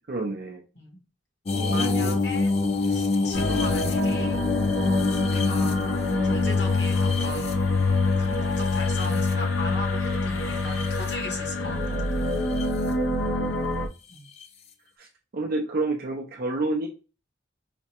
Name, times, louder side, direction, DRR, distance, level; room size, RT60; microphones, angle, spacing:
voice 1, 0.1-0.6 1.5-2.2 13.2-13.6 15.0-15.1 15.3-16.9, right 2 dB, 50° right, 1 dB, 0.5 m, -29 dB
sound 1, 1.5-9.8 10.4-11.1 12.3-12.7 14.4-14.5, left 3 dB, 35° left, 0.4 m, -28 dB
voice 2, 1.6-2.5 2.8-4.4 5.3-7.6 8.1-12.2 14.1-14.3, left 2 dB, 60° left, 2 dB, 1.2 m, -38 dB
sound 2, 3.3-13.9, left 3 dB, 80° left, 0.6 m, -25 dB
4.9 x 2.1 x 2.8 m, 0.34 s
head